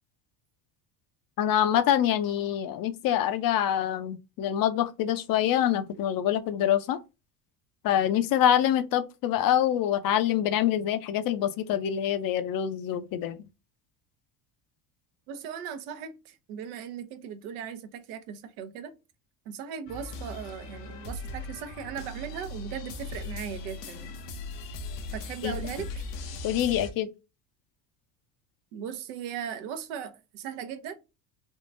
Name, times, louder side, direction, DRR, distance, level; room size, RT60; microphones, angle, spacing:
voice 1, 1.4-7.0 7.8-13.4 25.4-25.6 26.4-27.1, left 10 dB, 45° left, 0.6 m, -25 dB
voice 2, 15.3-18.9 19.5-24.1 25.1-26.1 28.7-31.1, right 8 dB, 70° right, 0.7 m, -38 dB
sound 1, 19.9-26.9, left 3 dB, 85° left, 0.8 m, -39 dB
3.6 x 2.3 x 2.5 m
hypercardioid pair, 75°, 48 cm